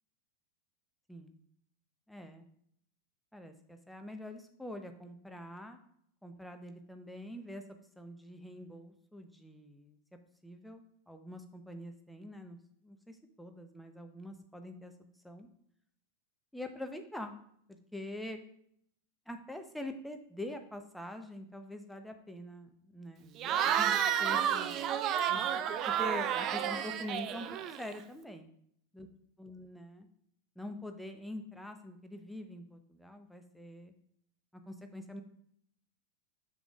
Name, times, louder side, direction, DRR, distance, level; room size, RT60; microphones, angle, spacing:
voice 1, 2.1-2.4 3.3-5.8 6.2-7.6 8.0-10.0 10.4-12.6 12.8-14.9 15.2-15.5 16.5-17.4 17.9-18.4 19.3-23.3 23.6-24.7 25.3-25.4 25.7-27.5 27.8-28.5 28.9-29.1 29.4-30.1 30.6-33.9 34.7-35.2, left 1 dB, ahead, 6 dB, 0.8 m, -45 dB
Cheering / Crowd, 23.4-28.0, right 9 dB, 35° right, 0.4 m, -31 dB
7.1 x 6.9 x 2.4 m, 0.69 s
figure-of-eight pair, 90°, 0 cm